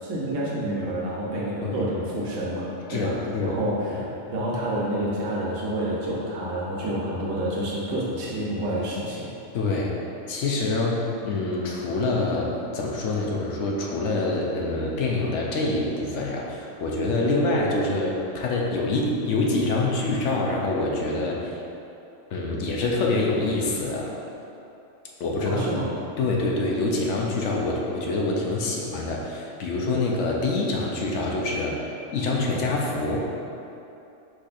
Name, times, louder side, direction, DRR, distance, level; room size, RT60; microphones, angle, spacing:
voice 1, 0.0-4.1 4.3-9.3 25.4-25.9, right 1 dB, 75° right, -5 dB, 1.1 m, -28 dB
voice 2, 2.9-3.6 3.9-4.0 9.5-9.9 10.3-21.5 22.3-24.1 25.2-25.7 26.2-31.9 32.1-33.3, left 2 dB, 70° left, -2 dB, 0.9 m, -26 dB
4.8 x 4.2 x 2.5 m, 2.8 s
omnidirectional pair, 1.3 m